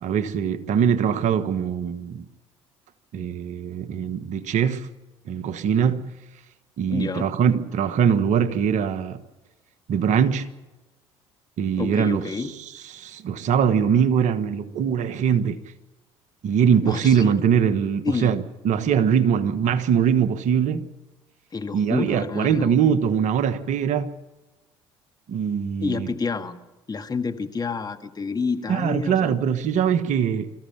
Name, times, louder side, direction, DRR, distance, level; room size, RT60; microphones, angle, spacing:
voice 1, 0.0-2.2 3.1-4.9 5.3-6.1 6.8-9.2 9.9-10.5 11.6-12.3 12.9-15.6 16.4-20.9 21.7-24.2 25.3-26.1 28.7-30.5, right 7 dB, 55° right, 1.3 m, -22 dB
voice 2, 6.9-7.3 11.8-12.5 16.8-17.3 18.1-18.3 21.5-22.7 25.8-26.6 26.9-29.4, left 4 dB, 25° left, 1.8 m, -29 dB
25.0 x 14.5 x 8.6 m
hypercardioid pair, 60°, 14 cm